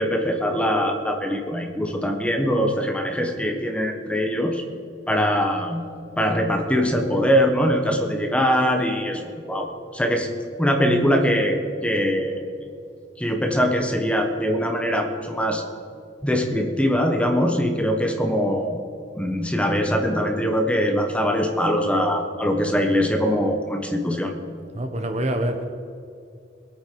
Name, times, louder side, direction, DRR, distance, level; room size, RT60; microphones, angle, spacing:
voice 1, 0.0-4.6 5.1-5.8 6.2-9.2 9.5-10.3 10.6-12.5 13.2-15.6 16.2-18.8 19.1-24.3, equal, 5° left, 3 dB, 1.3 m, -22 dB
voice 2, 24.7-25.7, right 1 dB, 40° right, 6 dB, 1.0 m, -25 dB
21.0 x 9.0 x 4.7 m, 2.4 s
head